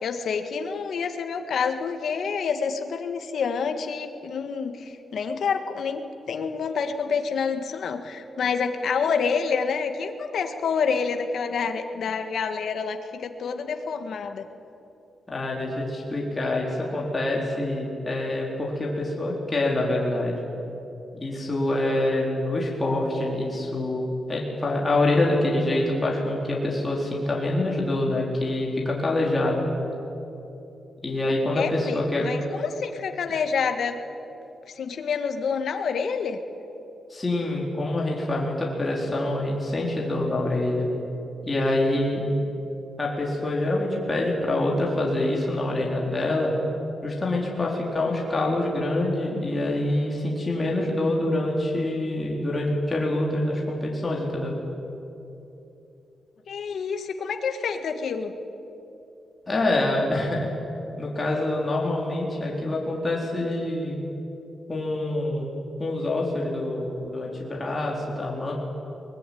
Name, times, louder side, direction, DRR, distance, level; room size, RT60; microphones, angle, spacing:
voice 1, 0.0-14.4 31.5-34.0 34.8-36.4 56.5-58.3, left 5 dB, 65° left, 6 dB, 1.7 m, -28 dB
voice 2, 15.3-20.4 21.1-29.7 31.0-32.2 37.1-40.9 41.4-42.2 43.0-46.5 47.0-54.5 59.5-60.5 61.0-64.0 64.7-65.5 65.8-68.5, left 1 dB, 20° left, -3 dB, 4.0 m, -26 dB
23.0 x 20.5 x 9.4 m, 2.9 s
wide cardioid pair, 140°, 0 cm